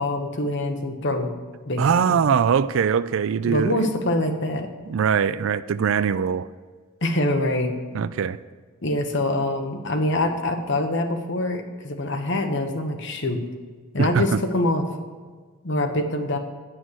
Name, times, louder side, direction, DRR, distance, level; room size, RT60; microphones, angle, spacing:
voice 1, 0.0-1.3 1.7-2.2 3.4-4.7 7.0-7.7 8.8-13.4 13.9-14.8 15.6-16.4, left 1 dB, 55° left, 5 dB, 1.0 m, -25 dB
voice 2, 1.8-3.9 4.9-6.5 7.9-8.4 14.0-14.4, right 7 dB, 65° right, 16 dB, 0.3 m, -22 dB
9.4 x 6.2 x 6.3 m, 1.5 s
head